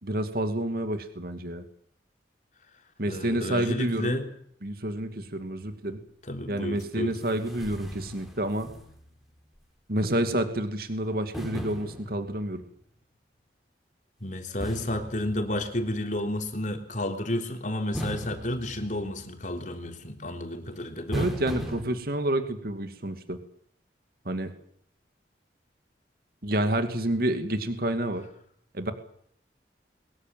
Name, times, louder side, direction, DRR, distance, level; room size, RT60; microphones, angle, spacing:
voice 1, 0.0-1.6 3.0-4.2 4.6-6.0 6.5-8.7 9.9-12.6 21.1-23.4 24.3-24.5 26.4-28.2 28.7-28.9, right 1 dB, 55° right, 8 dB, 2.5 m, -29 dB
voice 2, 3.1-4.3 6.3-7.1 14.2-21.3, left 1 dB, 45° left, 5 dB, 3.5 m, -31 dB
sound 1, 6.8-6.9 7.2-9.2 9.6-9.7 11.3-12.7 14.6-16.0 17.9-19.5 21.1-21.8, equal, ahead, 4.2 m, -38 dB
22.5 x 21.5 x 7.6 m, 0.66 s
head